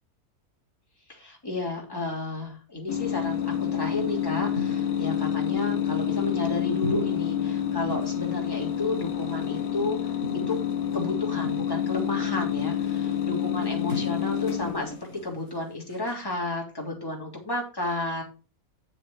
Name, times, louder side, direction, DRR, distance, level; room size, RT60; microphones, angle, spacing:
voice 1, 1.1-10.6 10.9-18.2, left 2 dB, 15° left, -1 dB, 3.2 m, -32 dB
sound 1, 2.9-15.2, left 9 dB, 80° left, 1.7 m, -28 dB
sound 2, 3.7-4.0 4.5-5.2 5.7-6.4 6.8-7.5 7.9-9.9 10.2-10.9 11.4-12.3 12.6-13.2 13.6-16.2, left 2 dB, 60° right, 5.3 m, -40 dB
8.9 x 7.0 x 4.6 m, 0.33 s
omnidirectional pair, 1.6 m